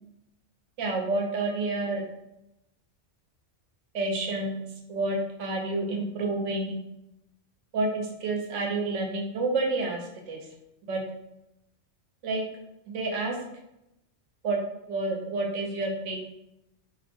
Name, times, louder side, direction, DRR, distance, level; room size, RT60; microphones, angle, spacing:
voice 1, 0.8-2.0 3.9-6.8 7.7-10.0 10.3-10.4 10.8-11.0 12.2-12.4 12.9-13.4 14.4-14.6 14.9-16.2, right 2 dB, 80° right, 0 dB, 0.9 m, -29 dB
2.5 x 2.1 x 2.9 m, 0.85 s
omnidirectional pair, 1.3 m